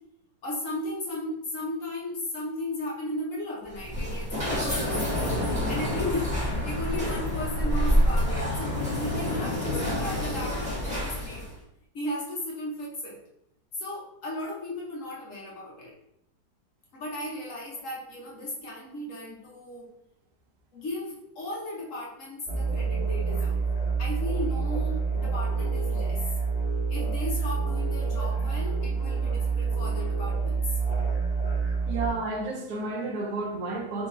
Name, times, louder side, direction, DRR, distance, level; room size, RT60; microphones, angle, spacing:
voice 1, 0.4-5.1 5.7-11.5 11.9-13.2 13.7-15.9 16.9-19.9 20.7-23.6 24.0-26.3 26.9-30.8, left 1 dB, 55° left, -4 dB, 1.0 m, -35 dB
sound 1, 3.7-11.5, left 1 dB, 5° right, 1.2 m, -27 dB
sound 2, 22.5-32.1, right 5 dB, 40° left, 0.6 m, -27 dB
voice 2, 31.8-34.1, right 3 dB, 65° right, 1 dB, 1.2 m, -31 dB
3.8 x 2.8 x 3.8 m, 0.80 s
omnidirectional pair, 2.0 m